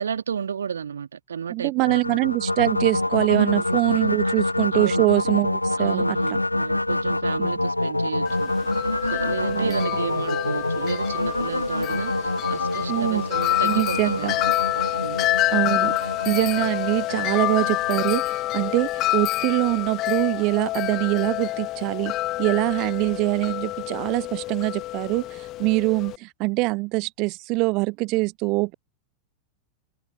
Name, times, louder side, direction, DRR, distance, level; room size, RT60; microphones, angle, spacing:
voice 1, 0.0-2.0 3.3-3.6 4.7-5.1 5.8-8.5 9.0-14.3 15.0-15.3, right 7 dB, 70° right, 1.8 m, -32 dB
voice 2, 1.5-6.4 7.4-7.5 9.5-9.8 12.9-13.2 13.6-14.3 15.5-15.9 16.3-22.1 22.4-28.7, right 26 dB, 40° right, 0.5 m, -24 dB
sound 1, 1.8-18.0, left 2 dB, 85° left, 1.1 m, -26 dB
Wind chime, 8.3-26.2, left 16 dB, 35° left, 0.9 m, -28 dB
open air
figure-of-eight pair, 90°, 0 cm